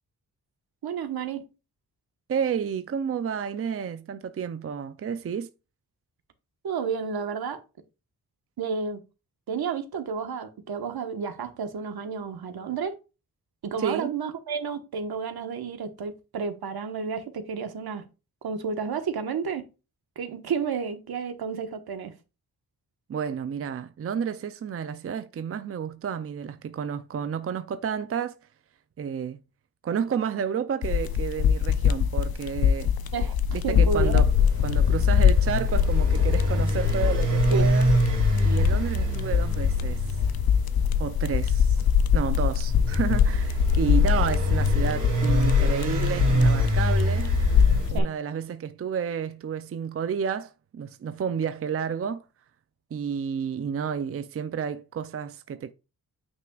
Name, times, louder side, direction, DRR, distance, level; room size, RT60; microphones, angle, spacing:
voice 1, 0.8-1.5 6.6-7.6 8.6-9.0 9.5-12.9 13.6-18.0 18.4-19.6 20.2-22.1 33.1-34.2 37.5-37.7 47.9-48.1, right 6 dB, 80° right, 1.3 m, -31 dB
voice 2, 2.3-5.5 13.8-14.1 23.1-28.4 29.0-29.4 29.8-32.9 33.5-34.3 34.6-37.9 38.4-40.2 41.0-41.8 42.1-47.3 47.9-52.2 52.9-55.7, right 7 dB, 40° right, 0.5 m, -31 dB
sound 1, 30.8-48.0, left 8 dB, 75° left, 0.6 m, -23 dB
sound 2, 33.4-47.9, right 2 dB, 55° right, 2.8 m, -27 dB
9.2 x 5.8 x 2.4 m
wide cardioid pair, 165°, 37 cm